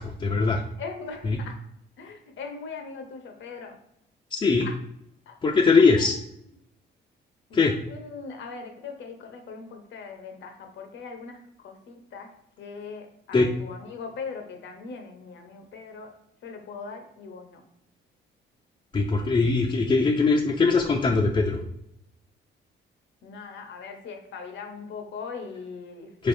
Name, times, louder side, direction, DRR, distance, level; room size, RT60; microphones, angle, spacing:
voice 1, 0.0-0.6 1.2-1.4 4.3-4.7 5.4-6.1 7.5-7.7 13.3-13.5 18.9-21.6 26.2-26.3, left 4 dB, 25° left, 1 dB, 0.4 m, -21 dB
voice 2, 0.8-1.6 2.0-3.8 4.6-4.7 5.3-5.4 6.0-6.1 7.5-7.6 7.9-11.4 11.6-12.3 12.6-16.1 16.4-17.6 23.2-26.1, left 5 dB, 70° left, 4 dB, 0.8 m, -40 dB
3.9 x 3.3 x 2.6 m, 0.76 s
cardioid pair, 90°, 20 cm